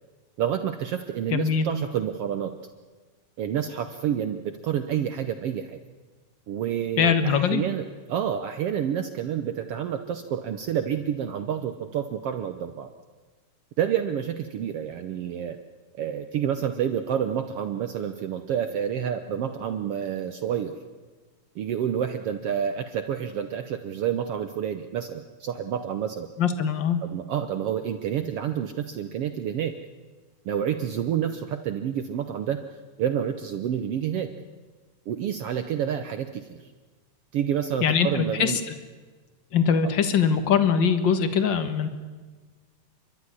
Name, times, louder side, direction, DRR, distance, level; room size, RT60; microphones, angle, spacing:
voice 1, 0.4-2.5 3.4-5.8 6.5-12.9 13.8-15.6 15.9-20.7 21.5-26.3 27.1-29.7 30.4-32.6 33.0-34.3 35.1-36.6 37.3-38.6 39.8-39.9, right 9 dB, 85° right, 8 dB, 1.3 m, -29 dB
voice 2, 1.3-1.7 7.0-7.6 26.4-27.0 37.8-38.6 39.5-41.9, left 7 dB, 50° left, 9 dB, 1.4 m, -22 dB
29.5 x 12.0 x 9.8 m, 1.4 s
omnidirectional pair, 3.9 m